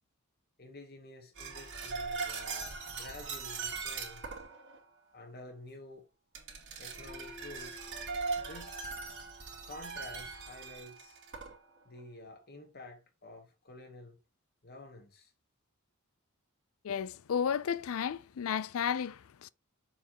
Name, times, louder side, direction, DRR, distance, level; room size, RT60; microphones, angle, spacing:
voice 1, 0.6-4.3 5.1-6.0 6.8-7.9 8.4-8.8 9.6-11.2 11.8-14.2 14.6-15.3, left 2 dB, 45° left, 1.2 m, -50 dB
sound 1, 1.4-4.8 6.3-11.6 11.8-12.0, right 4 dB, 65° right, 2.5 m, -40 dB
voice 2, 16.8-19.5, left 7 dB, 70° left, 0.4 m, -33 dB
7.2 x 4.4 x 3.0 m
head